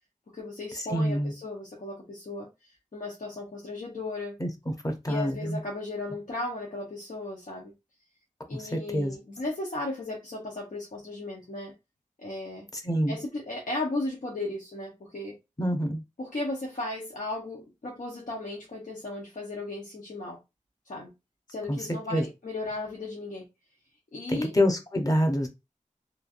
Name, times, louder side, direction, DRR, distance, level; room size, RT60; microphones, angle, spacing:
voice 1, 0.3-2.5 2.9-4.4 5.1-7.7 8.5-11.7 12.2-12.7 13.1-15.4 16.2-20.4 20.9-21.1 21.5-23.5 24.1-24.6, left 2 dB, 80° left, 0.8 m, -35 dB
voice 2, 0.9-1.3 4.4-4.5 4.8-5.6 8.7-9.1 12.8-13.1 15.6-16.0 21.7-21.8 22.1-22.2 24.3-25.5, equal, 25° left, 0.8 m, -26 dB
3.1 x 2.3 x 2.5 m
wide cardioid pair, 50°, 14 cm